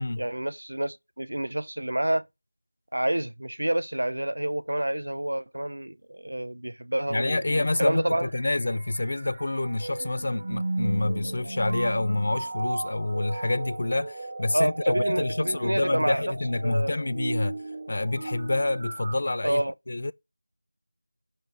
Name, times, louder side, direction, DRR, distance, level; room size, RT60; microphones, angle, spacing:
voice 1, 0.0-2.2 2.9-8.3 14.5-16.2 16.6-17.0 19.4-19.7, right 1 dB, 75° right, 0.6 m, -28 dB
voice 2, 7.1-17.6 17.9-19.6 19.9-20.1, left 2 dB, 40° left, 0.4 m, -27 dB
sound 1, 7.4-19.2, right 2 dB, 30° right, 0.5 m, -35 dB
5.3 x 5.2 x 6.1 m
figure-of-eight pair, 175°, 0 cm